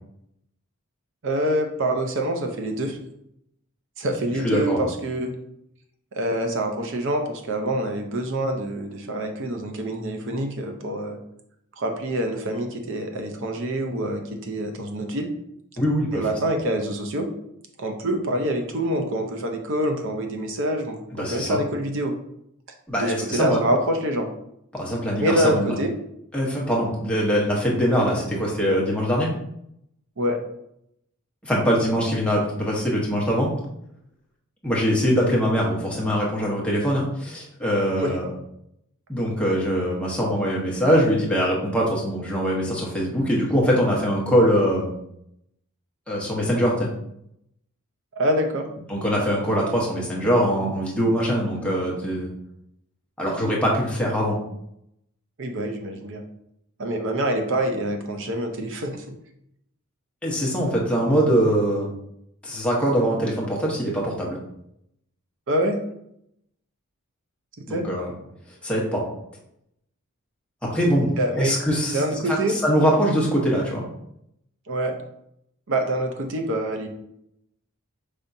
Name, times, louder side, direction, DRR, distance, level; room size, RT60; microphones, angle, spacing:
voice 1, 1.2-3.0 4.0-5.3 6.1-11.2 11.8-15.3 16.1-17.3 17.8-22.1 23.0-24.3 25.2-25.9 30.2-30.4 38.0-38.1 48.2-48.7 55.4-56.2 56.8-59.2 65.5-65.8 67.7-67.8 71.2-71.5 71.9-72.6 74.7-75.0 75.7-76.9, right 1 dB, 60° right, 4 dB, 0.7 m, -26 dB
voice 2, 4.4-4.9 15.8-16.2 21.1-21.6 22.9-23.6 24.7-25.7 26.3-29.3 31.4-33.5 34.6-38.3 39.1-44.9 46.1-46.9 48.9-52.3 53.2-54.4 60.2-61.9 62.4-64.4 67.7-68.1 68.6-69.0 70.6-72.4 72.6-73.8, equal, 5° left, -4 dB, 1.0 m, -22 dB
5.2 x 3.5 x 2.7 m, 0.77 s
head